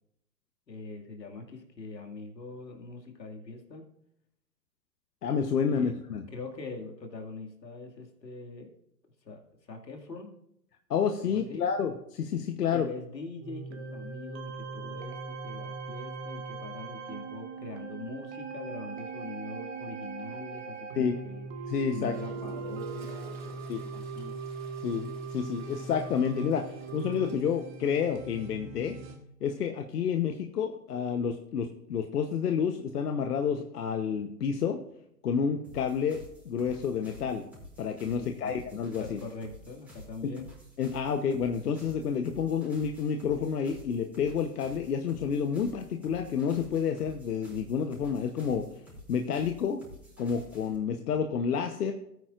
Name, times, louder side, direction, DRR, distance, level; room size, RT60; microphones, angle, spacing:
voice 1, 0.7-3.8 5.7-5.9 6.3-8.7 9.2-10.3 11.2-11.7 12.7-23.6 23.9-24.4 38.1-38.6 39.0-40.5, left 3 dB, 80° left, 3 dB, 2.4 m, -43 dB
voice 2, 5.2-6.2 10.9-12.9 20.9-21.2 21.7-22.2 23.7-23.8 24.8-28.9 29.4-34.8 35.2-37.4 37.8-39.2 40.8-48.6 49.1-49.8 50.2-51.9, left 7 dB, 65° left, 5 dB, 1.1 m, -29 dB
sound 1, 13.4-29.2, right 4 dB, 40° right, 1.9 m, -40 dB
Toilet flush, 22.0-27.8, right 2 dB, 85° right, 4.3 m, -54 dB
sound 2, 35.6-50.8, equal, 5° right, 4.6 m, -51 dB
18.0 x 9.3 x 2.5 m, 0.77 s
hypercardioid pair, 125°, 50 cm